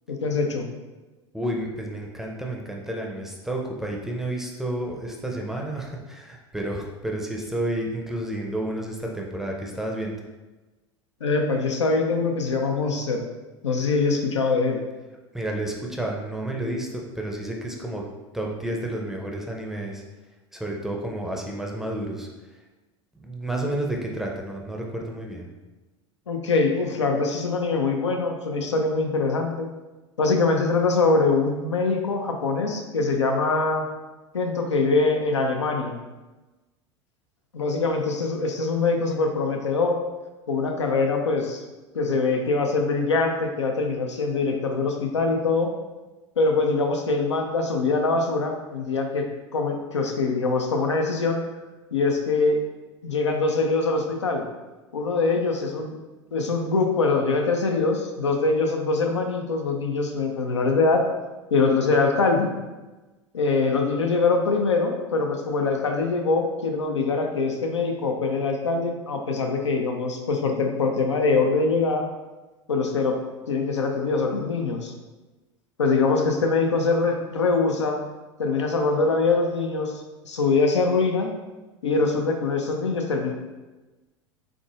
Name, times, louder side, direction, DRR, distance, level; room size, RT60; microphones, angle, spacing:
voice 1, 0.1-0.7 11.2-13.3 13.6-14.8 26.3-29.7 30.2-33.8 34.3-36.0 37.5-40.0 40.5-41.6 41.9-45.7 46.4-49.2 49.5-51.4 51.9-52.6 53.0-54.5 54.9-56.0 56.3-61.0 61.5-62.6 63.3-72.1 72.7-73.2 73.5-74.9 75.8-78.0 78.4-81.3 81.8-83.3, left 3 dB, 75° left, 3 dB, 0.5 m, -23 dB
voice 2, 1.3-10.1 15.3-18.0 18.3-20.0 20.5-22.3 23.2-25.4, right 1 dB, 5° right, 0 dB, 0.5 m, -30 dB
3.9 x 3.6 x 2.4 m, 1.2 s
figure-of-eight pair, 80°, 15 cm